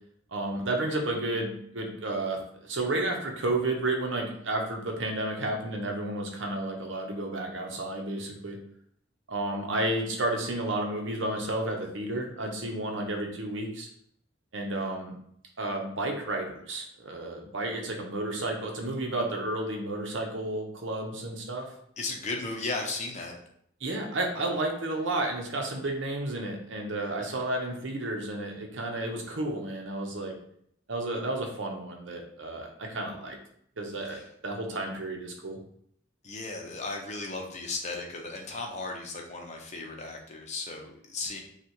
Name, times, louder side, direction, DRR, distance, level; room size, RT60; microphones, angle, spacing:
voice 1, 0.3-8.6 9.3-13.9 14.5-15.1 15.6-21.7 23.8-30.4 30.9-33.4 33.8-35.6, right 2 dB, 65° right, 2 dB, 0.9 m, -32 dB
voice 2, 22.0-23.3 34.1-34.2 36.2-41.4, left 3 dB, 35° left, 1 dB, 0.8 m, -35 dB
5.9 x 2.5 x 3.0 m, 0.69 s
head